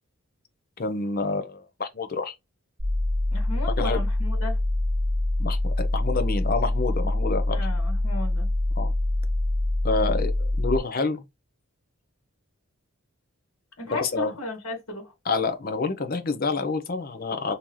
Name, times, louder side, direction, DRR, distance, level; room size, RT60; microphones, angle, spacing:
voice 1, 0.8-2.3 3.8-4.0 5.4-7.7 8.8-8.9 9.8-11.2 13.9-14.3 15.3-17.5, left 3 dB, 40° left, 0.7 m, -28 dB
sound 1, 2.8-10.8, left 1 dB, 30° right, 1.4 m, -25 dB
voice 2, 3.3-4.6 7.5-8.5 9.9-10.2 13.8-15.1, left 2 dB, 80° left, 1.6 m, -35 dB
3.7 x 2.8 x 3.1 m
head